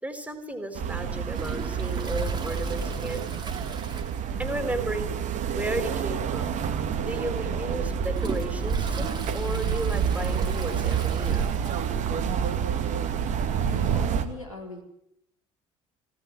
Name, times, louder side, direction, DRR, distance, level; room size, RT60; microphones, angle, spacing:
voice 1, 0.0-3.3 4.4-5.1 5.6-6.6 7.0-11.5, right 1 dB, 10° right, 7 dB, 4.4 m, -34 dB
sound 1, 0.8-14.3, right 7 dB, 50° right, 2.1 m, -28 dB
Toilet flush, 1.3-4.8 5.0-5.1 5.6-5.7 6.5-6.6 7.2-12.1 12.4-12.5 12.7-12.8 13.8-13.9, right 4 dB, 25° right, 2.9 m, -41 dB
voice 2, 13.6-14.8, left 1 dB, 85° left, 0 dB, 4.1 m, -39 dB
20.0 x 17.5 x 9.2 m, 0.78 s
figure-of-eight pair, 60°, 17 cm